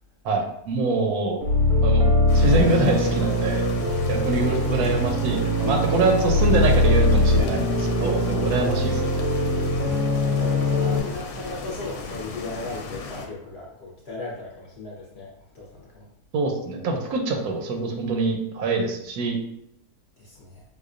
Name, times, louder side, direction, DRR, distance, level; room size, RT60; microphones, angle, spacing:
voice 1, 0.2-1.4 1.8-3.7 4.1-9.0 16.3-19.4, right 3 dB, 80° right, 3 dB, 1.1 m, -24 dB
sound 1, 1.4-11.0, left 1 dB, 55° right, 0.7 m, -21 dB
sound 2, 2.3-13.3, left 3 dB, 90° left, 1.1 m, -36 dB
voice 2, 10.0-16.1 20.2-20.6, left 3 dB, 60° left, -4 dB, 0.7 m, -37 dB
4.9 x 2.1 x 2.4 m, 0.78 s
omnidirectional pair, 1.6 m